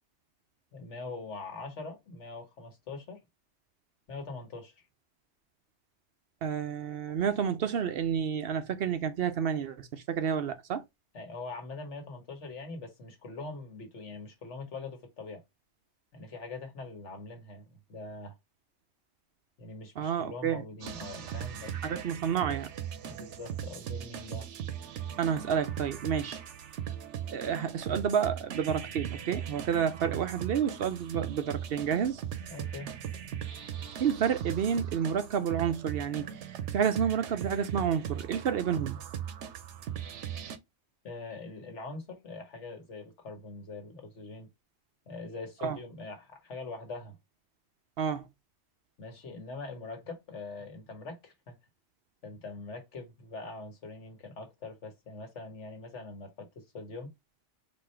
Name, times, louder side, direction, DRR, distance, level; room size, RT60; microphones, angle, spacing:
voice 1, 0.7-3.2 4.1-4.8 11.1-15.4 16.1-18.3 19.6-21.9 23.0-24.5 32.5-32.9 41.0-44.5 45.1-47.1 49.0-51.6 52.2-57.1, left 3 dB, 85° left, 1.6 m, -43 dB
voice 2, 6.4-10.8 20.0-20.6 21.8-22.7 25.2-26.4 27.3-32.2 34.0-39.0 45.6-45.8 48.0-48.3, right 8 dB, 60° right, 0.8 m, -30 dB
sound 1, 20.8-40.6, right 9 dB, 90° right, 1.0 m, -39 dB
4.2 x 2.5 x 4.3 m
omnidirectional pair, 1.2 m